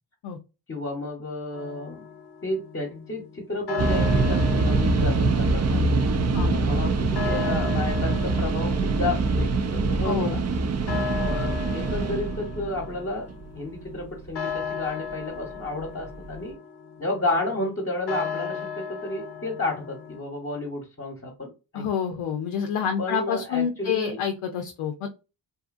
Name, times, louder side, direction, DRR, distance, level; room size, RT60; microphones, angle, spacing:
voice 1, 0.7-2.1 2.4-5.9 6.5-10.4 10.9-13.3 13.5-16.5 17.0-21.8 23.0-24.2, left 2 dB, 25° left, -1 dB, 0.9 m, -32 dB
sound 1, 1.6-20.2, left 7 dB, 55° left, 0.7 m, -37 dB
sound 2, 3.8-14.6 15.2-15.3 15.7-16.4, right 3 dB, 35° right, 0.5 m, -24 dB
voice 2, 10.0-10.3 21.7-25.1, left 7 dB, 90° left, 4 dB, 0.6 m, -28 dB
2.7 x 2.4 x 2.5 m, 0.29 s
cardioid pair, 50°, 49 cm